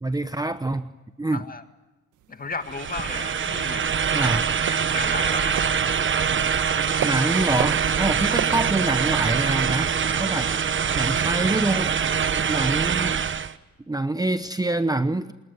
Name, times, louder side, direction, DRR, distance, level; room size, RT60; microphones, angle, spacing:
voice 1, 0.0-0.9 1.2-1.5 4.1-4.4 7.0-9.9 10.2-10.7 10.9-11.9 12.5-13.2 13.9-15.3, right 2 dB, 10° right, 11 dB, 1.0 m, -25 dB
voice 2, 1.3-1.6 2.3-3.9 4.2-4.3 4.7-5.6, left 4 dB, 30° left, 8 dB, 2.1 m, -34 dB
sound 1, 2.1-11.0, right 10 dB, 80° right, 1.9 m, -38 dB
sound 2, 2.7-13.5, right 7 dB, 40° right, 1.2 m, -24 dB
25.0 x 21.0 x 9.7 m, 1.1 s
cardioid pair, 90°, 30 cm